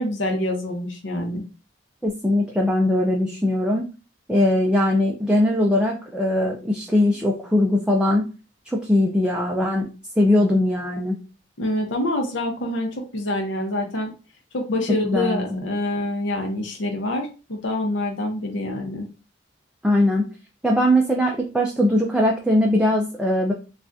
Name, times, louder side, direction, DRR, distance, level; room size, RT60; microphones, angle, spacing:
voice 1, 0.0-1.4 11.6-14.1 14.5-19.1, left 1 dB, 80° left, 2 dB, 0.7 m, -26 dB
voice 2, 2.0-3.9 4.3-8.3 8.7-9.8 10.2-11.2 15.0-15.7 19.8-20.2 20.6-23.5, left 1 dB, 5° right, -1 dB, 0.3 m, -20 dB
3.4 x 2.3 x 2.5 m, 0.34 s
head